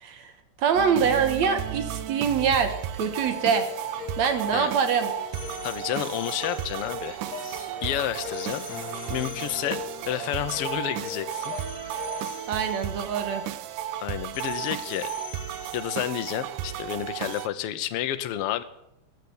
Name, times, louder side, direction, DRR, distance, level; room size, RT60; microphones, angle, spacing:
voice 1, 0.6-3.6 4.2-5.1 12.5-13.4, right 6 dB, 65° right, 8 dB, 2.3 m, -24 dB
sound 1, 0.8-17.5, right 11 dB, 85° right, 2.3 m, -34 dB
sound 2, 3.2-13.9 14.3-17.0 17.3-17.4, left 6 dB, 60° left, 2.7 m, -41 dB
voice 2, 5.6-7.2 7.8-8.7 9.1-11.5 11.9-12.0 14.0-15.1 15.7-18.6, left 12 dB, 75° left, 11 dB, 1.3 m, -30 dB
sound 3, 7.2-9.4, left 1 dB, 40° left, 6.8 m, -47 dB
14.0 x 8.0 x 9.6 m, 0.82 s
omnidirectional pair, 3.7 m